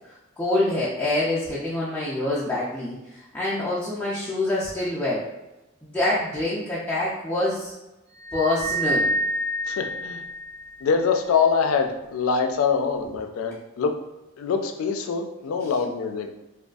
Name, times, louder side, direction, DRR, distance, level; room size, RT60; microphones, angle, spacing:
voice 1, 0.1-5.3 5.8-7.7 8.3-9.1 15.6-15.7, left 2 dB, 5° left, -9 dB, 0.3 m, -26 dB
sound 1, 8.2-10.9, equal, 50° right, 0.5 m, -27 dB
voice 2, 9.7-10.2 10.8-13.9 14.4-16.3, left 5 dB, 90° left, 5 dB, 0.3 m, -24 dB
2.5 x 2.3 x 2.3 m, 0.98 s
head